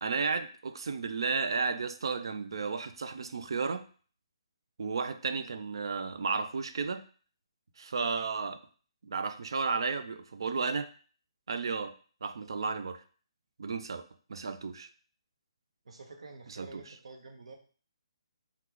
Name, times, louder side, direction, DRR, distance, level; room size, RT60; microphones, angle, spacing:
voice 1, 0.0-3.8 4.8-7.0 7.8-8.6 9.0-10.9 11.5-11.9 12.2-13.0 13.6-14.0 14.3-14.9 16.6-16.7, right 4 dB, 55° right, 9 dB, 0.3 m, -33 dB
voice 2, 15.8-17.6, right 3 dB, 85° right, 2 dB, 0.8 m, -48 dB
3.0 x 2.2 x 3.7 m, 0.42 s
hypercardioid pair, 180°, 3 cm